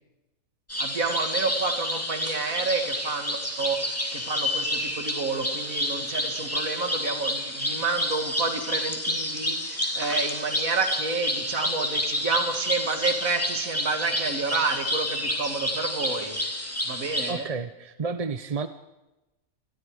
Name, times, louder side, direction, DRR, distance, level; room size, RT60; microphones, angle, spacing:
sound 1, 0.7-17.3, left 1 dB, 10° left, 2.8 m, -29 dB
voice 1, 0.8-16.4 16.8-17.5, right 4 dB, 65° right, 6 dB, 2.6 m, -29 dB
voice 2, 17.3-18.7, right 4 dB, 35° right, 10 dB, 0.6 m, -31 dB
27.0 x 21.0 x 4.9 m, 0.98 s
omnidirectional pair, 1.5 m